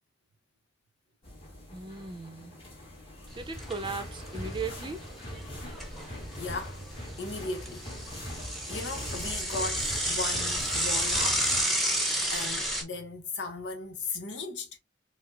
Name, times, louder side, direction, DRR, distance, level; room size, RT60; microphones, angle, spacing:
sound 1, 1.2-11.6, equal, 30° left, 1.3 m, -41 dB
voice 1, 1.7-2.6 3.3-5.0, right 4 dB, 25° right, 0.6 m, -37 dB
Bicycle / Mechanisms, 3.3-3.9 4.3-4.4 4.6-4.7 5.4-6.5 6.9-12.8, right 1 dB, ahead, 0.8 m, -30 dB
voice 2, 6.4-6.8 7.2-7.9 8.2-11.6 12.3-14.7, left 3 dB, 70° left, 0.9 m, -37 dB
4.9 x 2.1 x 2.6 m
head